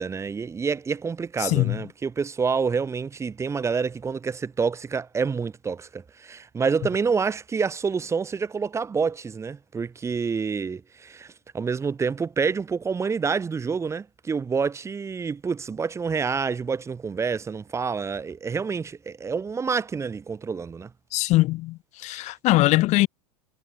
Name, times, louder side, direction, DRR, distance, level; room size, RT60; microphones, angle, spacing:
voice 1, 0.0-20.9, right 5 dB, 15° right, 0.7 m, -28 dB
voice 2, 1.4-1.8 21.1-23.1, left 19 dB, 45° left, 0.6 m, -21 dB
hypercardioid pair, 100°, 17 cm